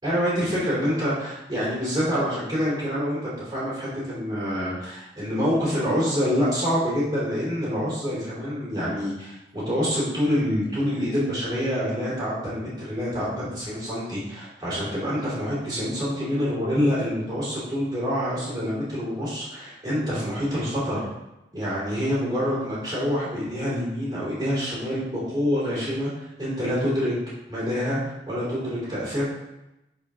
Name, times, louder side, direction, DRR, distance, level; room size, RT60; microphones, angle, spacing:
voice 1, 0.0-21.1 21.5-27.1 27.5-29.2, equal, 20° right, -10 dB, 3.2 m, -26 dB
10.5 x 5.0 x 3.7 m, 0.95 s
head